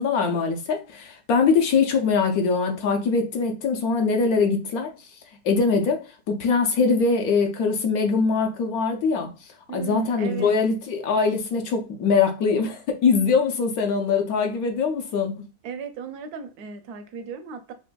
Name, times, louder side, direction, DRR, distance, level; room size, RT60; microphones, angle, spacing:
voice 1, 0.0-4.9 5.4-9.3 9.7-15.4, left 5 dB, 70° left, 1.1 m, -22 dB
voice 2, 9.7-10.6 15.6-17.7, right 6 dB, 75° right, 1.1 m, -36 dB
4.2 x 2.6 x 2.2 m
omnidirectional pair, 1.7 m